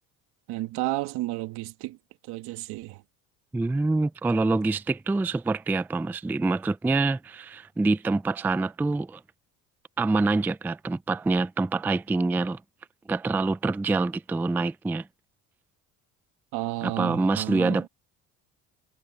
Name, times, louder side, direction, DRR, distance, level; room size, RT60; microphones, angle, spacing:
voice 1, 0.5-2.0 2.2-3.0 16.5-17.9, right 18 dB, 75° right, 1.6 m, -32 dB
voice 2, 3.5-9.2 10.0-12.6 13.1-15.1 16.8-17.9, right 3 dB, 5° right, 0.3 m, -26 dB
supercardioid pair, 85°, 39 cm